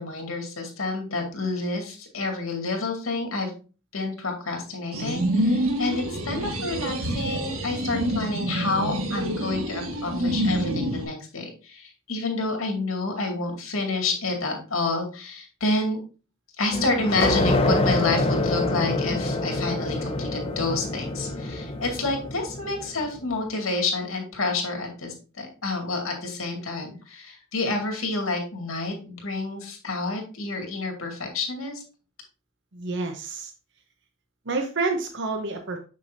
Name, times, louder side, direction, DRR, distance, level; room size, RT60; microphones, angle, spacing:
voice 1, 0.0-3.5 3.9-16.0 16.6-31.8, left 3 dB, 85° left, 2 dB, 2.2 m, -29 dB
sound 1, 4.9-11.0, right 1 dB, 90° right, 1.5 m, -27 dB
sound 2, 16.7-23.1, left 2 dB, 30° left, 0.7 m, -26 dB
voice 2, 32.7-33.5 34.4-35.8, right 3 dB, 60° right, 4 dB, 0.9 m, -28 dB
6.8 x 6.3 x 2.7 m, 0.34 s
head